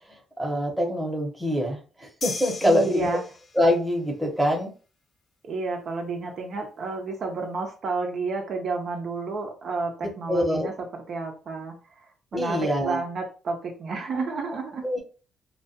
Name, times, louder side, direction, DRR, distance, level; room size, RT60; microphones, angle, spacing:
voice 1, 0.4-3.2 3.5-4.7 10.3-10.7 12.3-13.0 14.8-15.0, equal, 10° right, 0 dB, 0.8 m, -24 dB
sound 1, 2.2-3.8, left 3 dB, 40° left, 0.5 m, -36 dB
voice 2, 2.6-3.2 5.4-14.9, right 3 dB, 60° right, 2 dB, 0.5 m, -31 dB
2.2 x 2.2 x 2.7 m, 0.36 s
cardioid pair, 90°, 0 cm